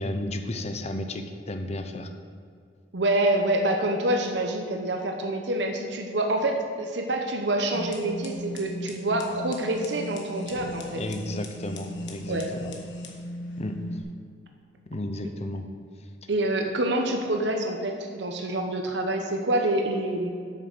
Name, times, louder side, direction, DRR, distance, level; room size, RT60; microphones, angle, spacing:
voice 1, 0.0-2.1 10.9-12.7 13.6-14.0 14.9-15.7, left 1 dB, 35° left, 6 dB, 0.8 m, -33 dB
voice 2, 2.9-11.0 12.3-12.5 16.3-20.3, right 1 dB, 75° right, 3 dB, 0.9 m, -26 dB
sound 1, 7.7-14.0, equal, 85° left, 1.3 m, -37 dB
8.7 x 6.6 x 6.1 m, 2.3 s
head